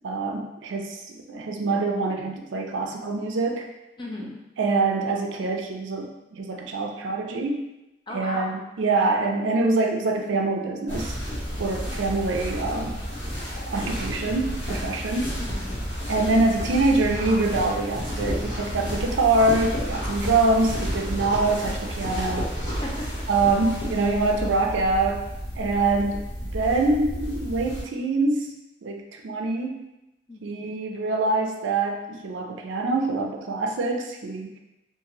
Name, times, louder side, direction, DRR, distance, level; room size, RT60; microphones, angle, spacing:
voice 1, 0.0-3.7 4.6-7.6 8.1-11.2 11.6-13.0 13.7-15.4 16.1-22.5 23.3-25.2 25.6-26.2 26.5-28.5 28.8-29.8 30.4-34.5, right 3 dB, 80° right, 2 dB, 0.4 m, -25 dB
voice 2, 4.0-4.4 8.1-8.5 11.6-11.9 15.4-15.9 22.7-23.2 30.3-30.6, left 1 dB, 25° left, -2 dB, 0.4 m, -37 dB
sound 1, 10.9-27.8, equal, 70° left, 0.9 m, -31 dB
2.7 x 2.5 x 2.9 m, 0.95 s
head